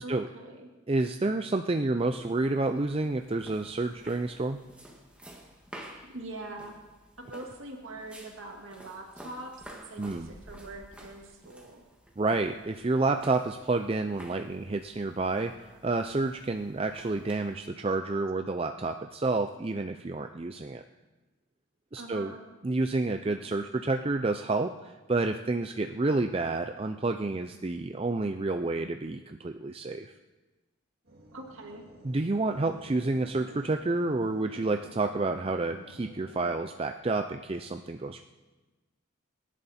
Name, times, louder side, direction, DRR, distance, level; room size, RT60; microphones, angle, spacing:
voice 1, 0.0-0.7 6.0-6.7 7.2-11.8 21.9-22.4 31.3-31.8, right 2 dB, 75° right, 1 dB, 2.1 m, -43 dB
voice 2, 0.9-4.6 10.0-10.3 12.2-20.8 21.9-22.3 22.6-30.1 32.0-38.2, right 3 dB, 25° right, 6 dB, 0.5 m, -29 dB
sound 1, 2.0-17.5, right 1 dB, 5° right, 1.8 m, -51 dB
sound 2, 31.0-36.7, equal, 50° right, 2.2 m, -51 dB
25.0 x 11.0 x 4.3 m, 1.2 s
head